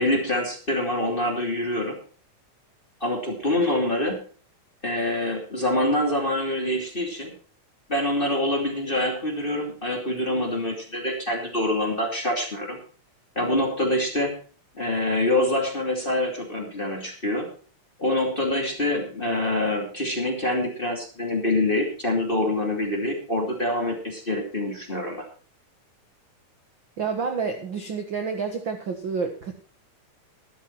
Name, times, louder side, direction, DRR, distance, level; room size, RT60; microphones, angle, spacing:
voice 1, 0.0-2.0 3.0-4.2 4.8-7.3 7.9-12.8 13.4-14.3 14.7-17.5 18.0-25.2, left 1 dB, 20° left, 1 dB, 2.3 m, -25 dB
voice 2, 27.0-29.5, right 5 dB, 55° right, 6 dB, 1.4 m, -29 dB
13.0 x 12.0 x 4.5 m, 0.41 s
omnidirectional pair, 3.8 m